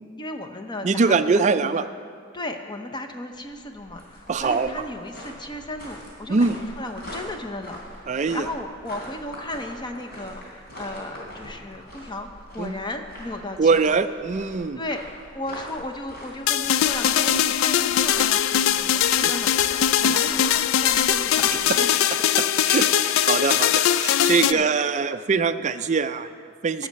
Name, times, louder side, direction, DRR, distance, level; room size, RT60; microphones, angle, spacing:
voice 1, 0.2-1.9 2.3-14.1 14.8-15.0 15.3-21.9 23.2-23.5 24.5-24.7 26.8-26.9, left 1 dB, 20° left, 5 dB, 0.7 m, -35 dB
voice 2, 0.8-1.8 4.3-4.8 6.3-6.6 8.1-8.5 12.6-12.7 13.6-14.8 17.3-17.4 19.2-19.3 20.0-20.1 22.4-26.9, right 4 dB, 35° right, 11 dB, 0.4 m, -23 dB
sound 1, 3.3-21.7, equal, 50° left, 3.6 m, -42 dB
sound 2, 16.5-24.5, left 10 dB, 65° left, 0.3 m, -21 dB
12.5 x 6.5 x 8.1 m, 2.2 s
head